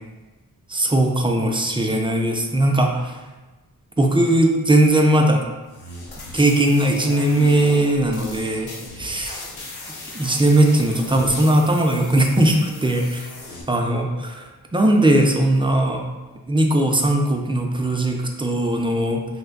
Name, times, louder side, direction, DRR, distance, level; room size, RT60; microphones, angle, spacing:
voice 1, 0.7-3.2 4.0-5.5 6.3-9.4 10.1-13.3 13.7-14.5 14.7-16.0 16.5-19.3, right 1 dB, 15° right, 2 dB, 0.3 m, -19 dB
sound 1, 5.7-13.6, left 2 dB, 85° left, 0.7 m, -37 dB
3.3 x 2.2 x 3.4 m, 1.2 s
wide cardioid pair, 85°, 38 cm